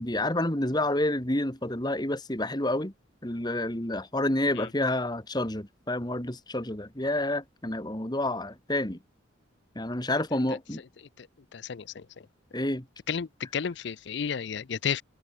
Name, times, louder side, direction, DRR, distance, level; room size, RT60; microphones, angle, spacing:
voice 1, 0.0-2.9 3.2-9.0 9.8-10.8 12.5-12.8, left 1 dB, 20° left, 2.1 m, -29 dB
voice 2, 11.5-12.0 13.1-15.0, left 7 dB, 55° left, 0.5 m, -32 dB
head